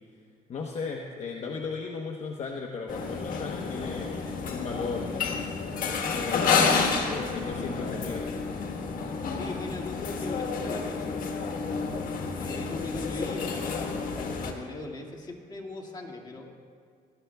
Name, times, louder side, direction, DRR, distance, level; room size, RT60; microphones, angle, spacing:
voice 1, 0.5-5.1 6.0-6.7 7.1-8.3, left 4 dB, 45° left, 0 dB, 1.0 m, -36 dB
sound 1, 2.9-14.5, left 5 dB, 65° left, 1.4 m, -30 dB
voice 2, 9.3-11.3 12.4-16.5, left 2 dB, 30° left, -1 dB, 2.0 m, -40 dB
19.5 x 13.0 x 2.3 m, 2.2 s
cardioid pair, 120°, 15 cm